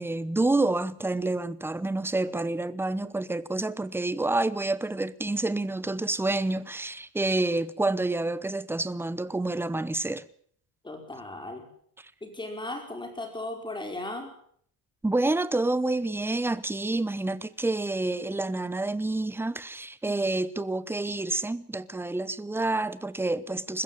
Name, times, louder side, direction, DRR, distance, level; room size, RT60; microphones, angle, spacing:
voice 1, 0.0-10.2 15.0-23.8, right 2 dB, 5° right, 0.8 m, -28 dB
voice 2, 10.8-11.7 12.2-14.3 20.0-20.4, left 2 dB, 10° left, 5.1 m, -37 dB
21.5 x 15.5 x 8.9 m
cardioid pair, 150°, 36 cm